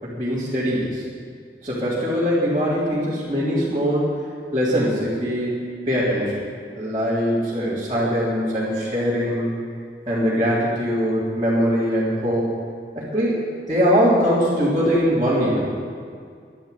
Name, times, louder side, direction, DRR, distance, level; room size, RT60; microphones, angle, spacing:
voice 1, 0.0-1.0 1.6-4.1 4.5-6.4 6.7-9.5 10.1-12.5 12.9-15.8, equal, 25° right, -12 dB, 3.5 m, -22 dB
12.0 x 11.0 x 9.4 m, 2.2 s
head